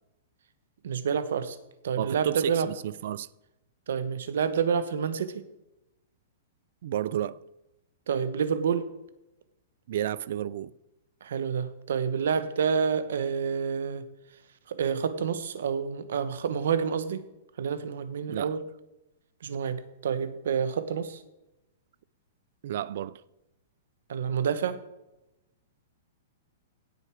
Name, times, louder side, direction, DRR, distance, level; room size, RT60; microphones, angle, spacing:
voice 1, 0.8-1.6 1.8-2.7 3.9-5.5 8.1-8.9 11.2-14.0 14.7-17.2 17.6-18.6 19.4-21.2 24.1-24.8, right 7 dB, 70° right, 1.1 m, -28 dB
voice 2, 2.0-3.3 6.8-7.4 9.9-10.7 18.3-18.5 22.6-23.2, right 11 dB, 50° right, 0.4 m, -32 dB
17.0 x 6.9 x 4.7 m
hypercardioid pair, 175°, 0 cm